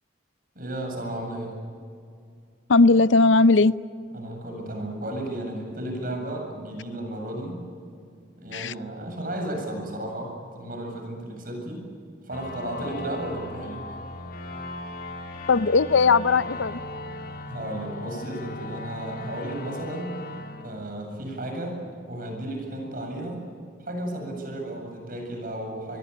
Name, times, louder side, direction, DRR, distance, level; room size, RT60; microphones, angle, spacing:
voice 1, 0.5-1.5 4.1-7.5 8.4-11.9 12.2-13.8 17.5-20.2 20.6-21.8 22.1-23.4 23.8-26.0, right 1 dB, 50° right, 2 dB, 7.6 m, -33 dB
voice 2, 2.7-3.7 8.5-8.7 15.5-16.8, left 3 dB, 75° left, 16 dB, 0.6 m, -18 dB
sound 1, 12.3-21.6, left 2 dB, 50° left, 2.2 m, -38 dB
26.5 x 21.5 x 8.5 m, 2.4 s
head